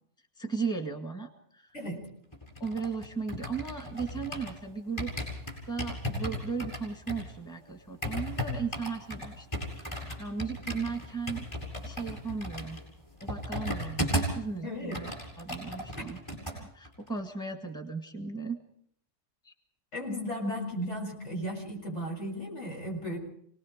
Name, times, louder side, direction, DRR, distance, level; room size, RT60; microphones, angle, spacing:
voice 1, 0.4-1.7 2.6-5.1 5.7-11.5 11.8-12.8 13.2-15.1 15.4-16.2 16.5-18.6 19.4-19.5, right 5 dB, 5° left, 5 dB, 1.8 m, -36 dB
sound 1, 2.3-4.6 5.0-14.4 14.7-16.6 16.8-17.1, equal, 20° left, 7.6 m, -36 dB
voice 2, 14.6-15.0 15.9-16.0 19.9-23.2, equal, 75° left, -1 dB, 7.5 m, -35 dB
27.5 x 19.5 x 5.2 m, 0.67 s
omnidirectional pair, 1.2 m